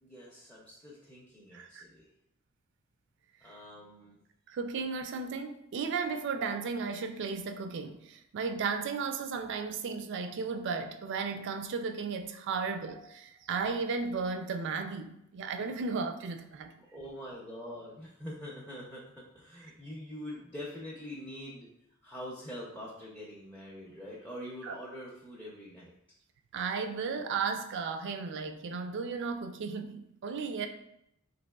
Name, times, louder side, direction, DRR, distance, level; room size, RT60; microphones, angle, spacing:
voice 1, 0.0-2.1 3.4-4.2 13.3-13.4 16.8-21.7 22.0-25.9, equal, 5° left, -5 dB, 0.5 m, -44 dB
voice 2, 1.5-1.8 4.5-16.7 24.6-24.7 26.5-30.7, right 5 dB, 60° right, 7 dB, 0.3 m, -35 dB
3.9 x 2.8 x 2.2 m, 0.78 s
head